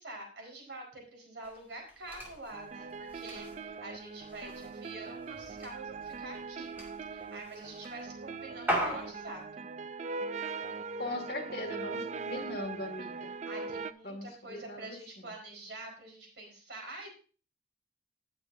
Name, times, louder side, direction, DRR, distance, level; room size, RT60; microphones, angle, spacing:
voice 1, 0.0-6.7 7.1-9.6 13.5-17.1, right 2 dB, 70° right, 0 dB, 4.4 m, -46 dB
sound 1, 1.4-9.4, equal, 10° right, 2.2 m, -40 dB
sound 2, 2.5-13.9, right 4 dB, 40° right, 0.4 m, -41 dB
voice 2, 11.0-13.3 14.0-15.0, left 1 dB, 55° left, 2 dB, 2.2 m, -39 dB
18.5 x 6.6 x 2.7 m, 0.39 s
head